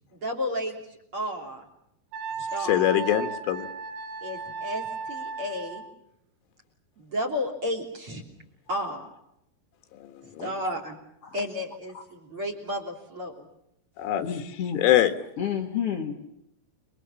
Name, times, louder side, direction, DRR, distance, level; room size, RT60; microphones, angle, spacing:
voice 1, 0.1-1.7 2.5-2.8 4.2-5.9 7.0-8.2 8.7-9.1 10.2-11.0 11.3-13.5, left 1 dB, 30° right, 6 dB, 3.3 m, -33 dB
Wind instrument woodwind instrument, 2.1-5.9, right 5 dB, 75° right, 3.8 m, -35 dB
voice 2, 2.6-3.7 9.9-10.5 14.0-14.3 14.8-15.1, left 12 dB, 85° left, 8 dB, 4.0 m, -24 dB
voice 3, 10.4-10.7 11.2-11.4 11.9-12.0 14.2-14.8 15.4-16.2, left 8 dB, 60° left, 0 dB, 1.5 m, -31 dB
29.0 x 22.5 x 7.3 m, 0.79 s
omnidirectional pair, 5.5 m